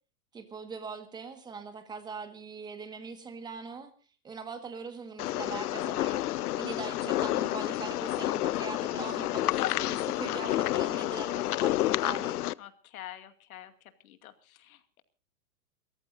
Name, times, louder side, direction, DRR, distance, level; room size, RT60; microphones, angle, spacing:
voice 1, 0.3-3.9 4.2-6.3 6.6-12.4, right 5 dB, 10° right, 8 dB, 1.6 m, -41 dB
sound 1, 5.2-12.5, left 15 dB, 85° left, 0.7 m, -30 dB
voice 2, 12.6-13.7 14.0-15.0, left 12 dB, 65° left, 9 dB, 2.5 m, -47 dB
28.5 x 14.5 x 2.6 m, 0.37 s
supercardioid pair, 165°, 44 cm